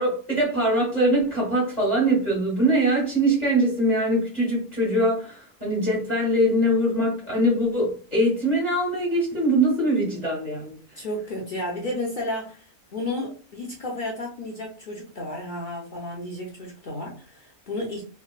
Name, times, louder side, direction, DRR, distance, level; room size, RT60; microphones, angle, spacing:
voice 1, 0.0-11.0, right 1 dB, 30° left, -3 dB, 1.3 m, -22 dB
voice 2, 11.0-18.0, left 1 dB, 55° left, -2 dB, 0.5 m, -32 dB
3.3 x 2.2 x 2.3 m, 0.40 s
omnidirectional pair, 1.6 m